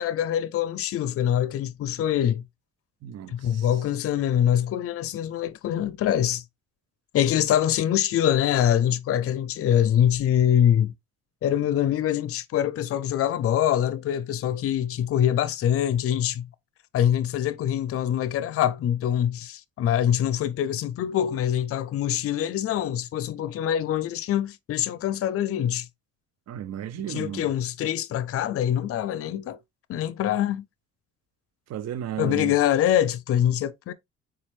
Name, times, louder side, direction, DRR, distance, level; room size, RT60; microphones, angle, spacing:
voice 1, 0.0-2.4 3.3-6.4 7.1-10.9 11.4-16.5 16.9-25.9 27.1-29.6 29.9-30.6 32.2-33.9, left 10 dB, 50° left, 0.4 m, -24 dB
voice 2, 3.0-3.7 26.5-27.5 31.7-32.5, right 10 dB, 60° right, 0.6 m, -34 dB
4.1 x 2.3 x 3.2 m
cardioid pair, 90°, 30 cm